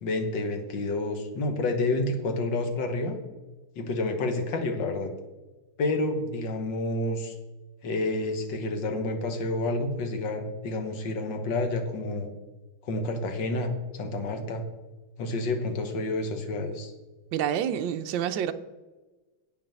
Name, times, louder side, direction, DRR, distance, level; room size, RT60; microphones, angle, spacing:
voice 1, 0.0-3.2 3.8-5.1 5.8-7.3 7.8-12.3 12.9-14.6 15.2-16.9, left 2 dB, 60° left, 1.9 m, -29 dB
voice 2, 17.3-18.5, right 9 dB, 70° right, 1.3 m, -28 dB
8.4 x 7.2 x 6.8 m
omnidirectional pair, 2.4 m